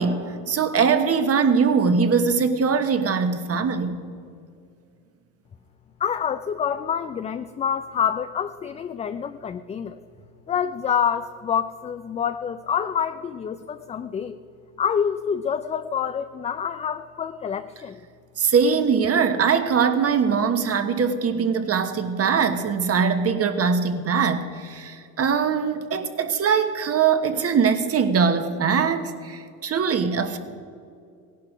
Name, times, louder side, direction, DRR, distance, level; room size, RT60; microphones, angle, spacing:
voice 1, 0.0-4.0 18.4-30.4, right 6 dB, 35° right, 9 dB, 1.3 m, -22 dB
voice 2, 6.0-10.0 10.5-14.4 14.8-18.0, left 8 dB, 15° left, 10 dB, 0.3 m, -27 dB
17.0 x 11.5 x 5.0 m, 2.4 s
supercardioid pair, 90°, 42 cm